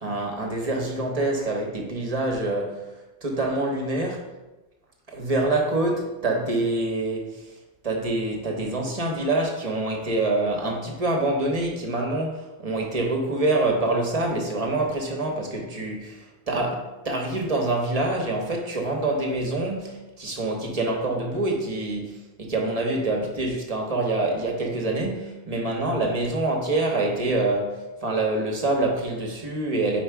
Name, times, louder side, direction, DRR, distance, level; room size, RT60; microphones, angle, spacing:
voice 1, 0.0-2.9 3.2-4.3 5.1-7.5 7.8-30.0, right 2 dB, 40° right, 1.0 m, -26 dB
4.6 x 4.5 x 4.6 m
omnidirectional pair, 1.0 m